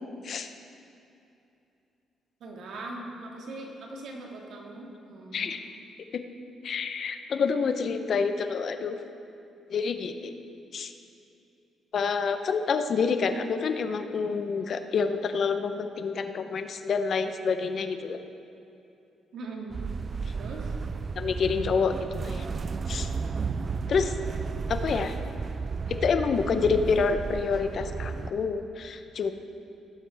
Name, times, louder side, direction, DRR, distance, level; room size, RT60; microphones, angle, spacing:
voice 1, 2.4-5.5 19.3-19.8 20.3-20.7, right 2 dB, 70° right, 0 dB, 1.8 m, -40 dB
voice 2, 5.3-5.6 6.1-6.2 6.6-9.0 9.7-10.3 10.7-10.9 11.9-18.2 21.2-22.4 22.9-23.1 23.9-24.1 24.7-25.2 25.9-29.3, left 5 dB, 55° left, 9 dB, 0.7 m, -28 dB
sound 1, 19.7-28.3, right 5 dB, 40° right, 0.4 m, -33 dB
17.5 x 7.6 x 3.4 m, 2.7 s
cardioid pair, 90°, 0 cm